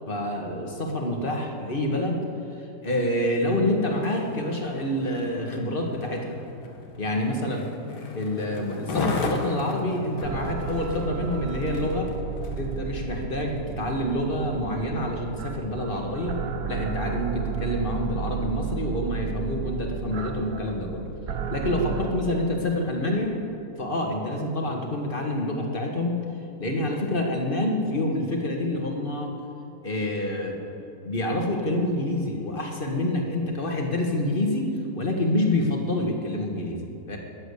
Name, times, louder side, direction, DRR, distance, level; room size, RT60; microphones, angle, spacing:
voice 1, 0.1-2.2 2.8-6.4 7.0-7.7 8.1-12.1 12.5-16.4 16.7-21.0 21.5-23.3 23.8-26.2 26.6-29.3 29.8-30.6 31.0-36.8 37.1-37.2, left 1 dB, 30° left, 1 dB, 2.0 m, -27 dB
Skateboard, 3.9-12.7 13.3-13.5, left 3 dB, 75° left, 2.1 m, -36 dB
sound 1, 10.2-22.1, right 6 dB, 60° right, 1.3 m, -33 dB
22.0 x 7.9 x 8.3 m, 2.7 s
omnidirectional pair, 1.8 m